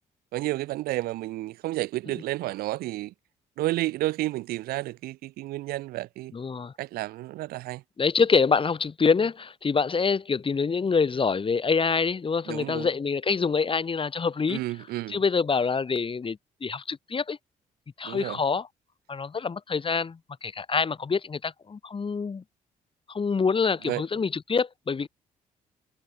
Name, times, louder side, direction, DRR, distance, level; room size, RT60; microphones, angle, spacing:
voice 1, 0.3-3.1 3.6-6.3 6.8-7.8 12.5-12.9 14.5-15.2 18.0-18.4 23.9-24.0, right 17 dB, 80° right, 0.9 m, -31 dB
voice 2, 6.3-6.7 8.0-14.6 15.1-17.4 18.0-18.7 19.1-22.4 23.1-25.1, left 5 dB, 35° left, 1.2 m, -26 dB
supercardioid pair, 60°, 16 cm